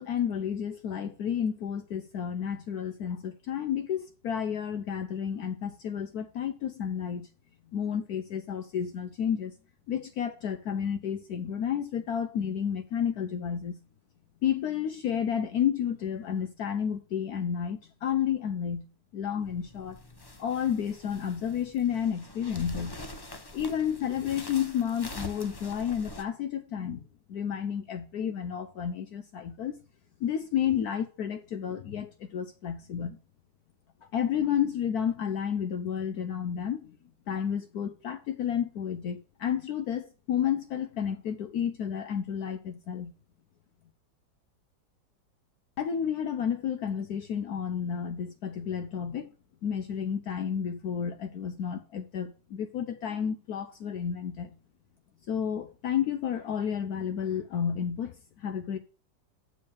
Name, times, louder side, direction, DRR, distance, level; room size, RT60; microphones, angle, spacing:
voice 1, 0.0-7.3 7.7-9.5 9.9-13.8 14.4-18.9 19.1-20.0 20.4-23.0 23.5-27.0 27.3-29.8 30.2-33.2 34.1-37.0 37.3-43.1 45.8-49.3 49.6-54.5 55.3-58.8, left 8 dB, 70° left, 1.1 m, -31 dB
sound 1, 19.4-26.2, left 2 dB, 35° left, 0.3 m, -45 dB
7.2 x 4.8 x 7.0 m
omnidirectional pair, 1.9 m